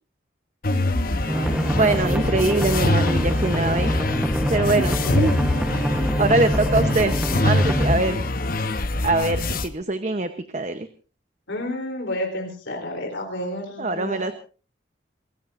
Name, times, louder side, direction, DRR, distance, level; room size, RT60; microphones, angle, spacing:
sound 1, 0.6-9.7, left 2 dB, 50° left, 0.9 m, -24 dB
voice 1, 0.7-1.0 1.7-3.9 4.4-5.3 6.0-7.1 7.4-8.2 9.0-10.9 13.8-14.3, right 2 dB, 40° right, 9 dB, 0.9 m, -23 dB
sound 2, 1.3-7.9, equal, 5° right, 1.1 m, -25 dB
voice 2, 11.5-14.3, left 1 dB, 80° left, 1 dB, 3.8 m, -30 dB
28.0 x 16.5 x 2.6 m, 0.36 s
head